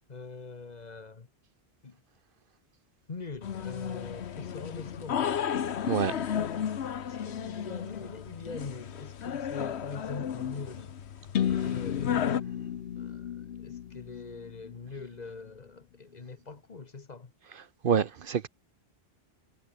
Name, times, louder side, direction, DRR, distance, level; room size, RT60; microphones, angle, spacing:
voice 1, 0.1-1.3 1.8-2.0 3.1-5.5 7.0-10.9 11.6-12.3 13.0-13.3 13.6-17.3, left 4 dB, 40° left, 1.3 m, -43 dB
sound 1, 3.4-12.4, left 8 dB, 80° left, 1.2 m, -34 dB
voice 2, 5.9-6.2 17.8-18.5, right 7 dB, 60° right, 0.9 m, -26 dB
sound 2, 11.3-15.2, left 9 dB, 65° left, 0.9 m, -33 dB
omnidirectional pair, 1.1 m